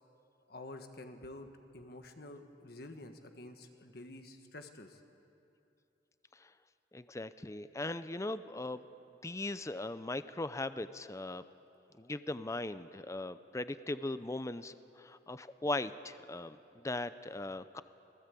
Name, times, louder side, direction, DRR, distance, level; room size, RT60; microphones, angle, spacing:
voice 1, 0.5-1.5 1.7-5.0, left 2 dB, 60° left, 6 dB, 1.5 m, -49 dB
voice 2, 6.9-8.8 9.2-11.4 12.0-17.8, left 2 dB, 15° left, 13 dB, 0.5 m, -39 dB
26.0 x 18.0 x 8.4 m, 2.7 s
head